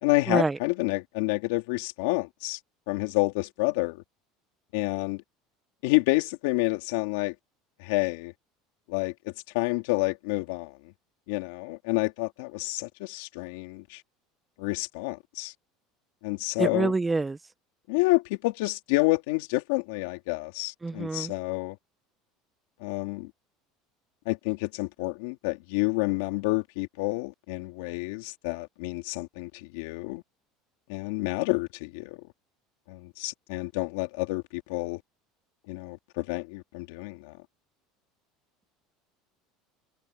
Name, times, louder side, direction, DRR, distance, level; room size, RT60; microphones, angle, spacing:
voice 1, 0.0-2.6 2.9-4.0 4.7-5.2 5.8-7.3 7.8-8.3 8.9-10.7 11.3-14.0 14.6-15.5 16.2-16.9 17.9-21.7 22.8-23.3 24.2-30.2 30.9-32.2 32.9-35.0 35.7-37.3, left 23 dB, 80° left, 3.5 m, -29 dB
voice 2, 16.6-17.4 20.8-21.3, right 3 dB, 10° right, 0.5 m, -26 dB
cardioid pair, 150°, 0 cm